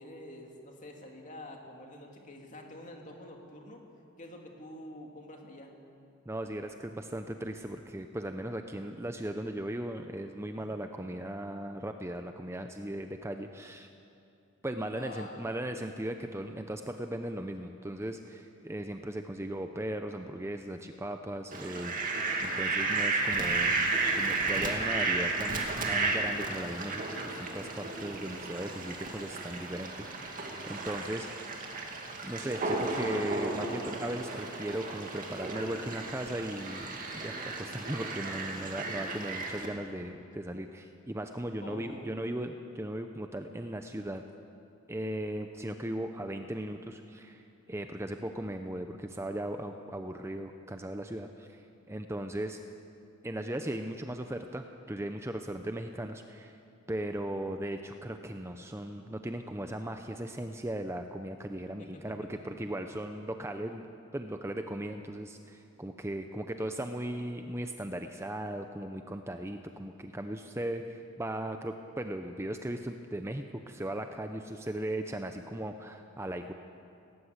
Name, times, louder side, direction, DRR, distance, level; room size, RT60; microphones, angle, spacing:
voice 1, 0.0-3.8 4.2-5.7 10.6-10.7 15.0-15.7 38.5-39.0 41.6-42.2 61.8-62.1, left 1 dB, 35° left, 1 dB, 2.6 m, -47 dB
voice 2, 6.3-13.9 14.6-21.9 22.4-23.8 24.1-31.3 32.2-44.2 44.9-47.4 47.7-51.6 51.9-52.6 53.2-56.6 56.9-63.9 64.1-76.5, right 1 dB, 10° right, 6 dB, 0.6 m, -37 dB
Fowl, 21.5-39.7, right 3 dB, 40° right, 2.4 m, -33 dB
18.5 x 18.5 x 8.0 m, 2.6 s
head